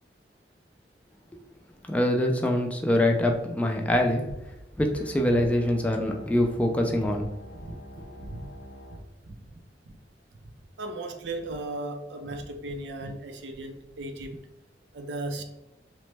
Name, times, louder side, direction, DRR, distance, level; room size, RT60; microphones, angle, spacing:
voice 1, 1.9-4.2 4.8-7.3, left 1 dB, 10° left, 0.3 m, -24 dB
voice 2, 3.9-4.4 5.4-5.5 7.0-7.1 7.5-7.8 8.2-8.5 8.9-9.0 9.2-9.4 9.9-10.0 10.4-10.5 10.8-14.4 14.9-15.4, right 2 dB, 80° right, 0.4 m, -37 dB
sound 1, 4.9-9.0, equal, 65° left, 0.6 m, -46 dB
3.0 x 2.0 x 3.2 m
head